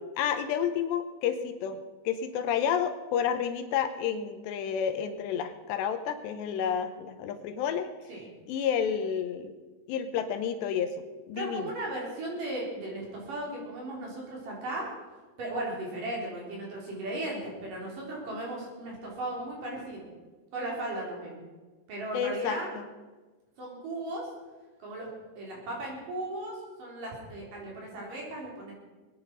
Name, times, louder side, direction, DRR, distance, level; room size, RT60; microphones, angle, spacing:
voice 1, 0.2-1.8 2.1-7.9 8.5-9.5 9.9-11.0 11.3-11.7 22.1-22.9, left 8 dB, 80° left, 8 dB, 3.0 m, -30 dB
voice 2, 11.4-14.9 15.4-20.0 20.5-21.4 21.9-22.7 23.6-24.3 24.8-25.1 25.4-28.7, right 1 dB, 50° right, -2 dB, 5.1 m, -36 dB
22.5 x 9.7 x 5.4 m, 1.3 s
omnidirectional pair, 5.1 m